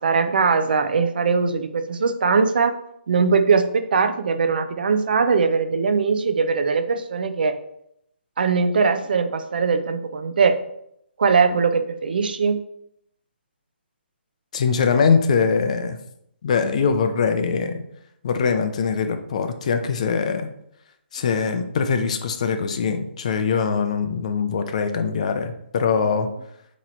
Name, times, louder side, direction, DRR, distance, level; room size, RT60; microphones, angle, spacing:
voice 1, 0.0-2.7 3.1-7.6 8.4-10.6 11.2-12.6, right 5 dB, 50° right, 9 dB, 0.6 m, -20 dB
voice 2, 14.5-16.0 16.4-17.8 18.2-20.5 21.1-26.3, left 5 dB, 35° left, 7 dB, 0.6 m, -22 dB
7.8 x 3.1 x 4.4 m, 0.76 s
hypercardioid pair, 170°, 6 cm